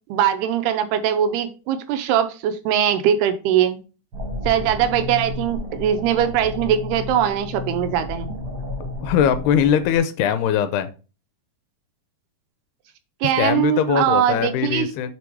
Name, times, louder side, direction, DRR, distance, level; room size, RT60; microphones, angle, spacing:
voice 1, 0.1-3.8 4.5-8.3 13.2-14.9, right 9 dB, 80° right, 9 dB, 2.5 m, -21 dB
sound 1, 4.1-10.0, left 2 dB, 65° right, 1.1 m, -32 dB
voice 2, 9.0-10.9 13.4-15.1, left 9 dB, 80° left, 10 dB, 2.5 m, -21 dB
7.6 x 3.4 x 4.6 m, 0.33 s
omnidirectional pair, 4.7 m